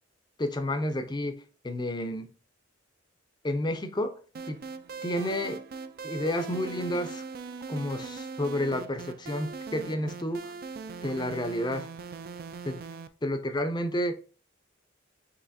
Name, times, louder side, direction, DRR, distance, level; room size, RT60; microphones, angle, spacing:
voice 1, 0.4-1.3 1.6-2.3 3.4-4.1 4.5-4.6 5.0-5.6 6.0-7.2 7.7-10.4 11.0-11.9 12.6-12.8 13.2-14.1, left 1 dB, 20° left, 0.5 m, -30 dB
sound 1, 4.3-13.1, right 5 dB, 50° right, 0.3 m, -40 dB
5.6 x 2.9 x 2.6 m
head